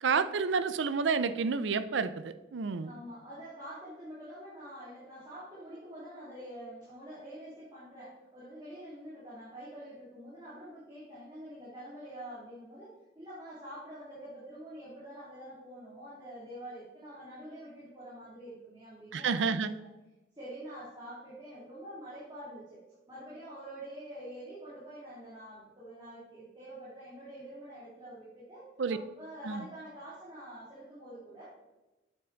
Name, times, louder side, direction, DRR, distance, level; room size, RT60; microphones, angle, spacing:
voice 1, 0.0-2.9 19.1-19.7 28.8-29.0 29.5-29.6, right 5 dB, 70° right, 0.5 m, -30 dB
voice 2, 2.8-19.9 20.3-22.8 23.1-31.4, right 1 dB, 20° right, 2.6 m, -46 dB
8.4 x 6.9 x 3.9 m
head